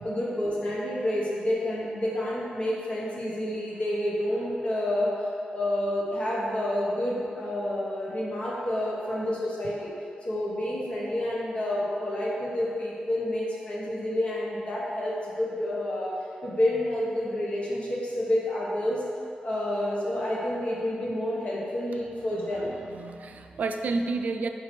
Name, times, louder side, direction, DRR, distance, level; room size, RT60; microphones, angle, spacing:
voice 1, 0.0-5.1 5.5-9.9 10.2-16.1 16.4-19.0 19.4-22.7, left 1 dB, 40° left, -6 dB, 1.2 m, -29 dB
voice 2, 22.9-24.5, right 3 dB, 65° right, 5 dB, 0.3 m, -30 dB
5.0 x 4.5 x 4.3 m, 2.5 s
wide cardioid pair, 165°, 3 cm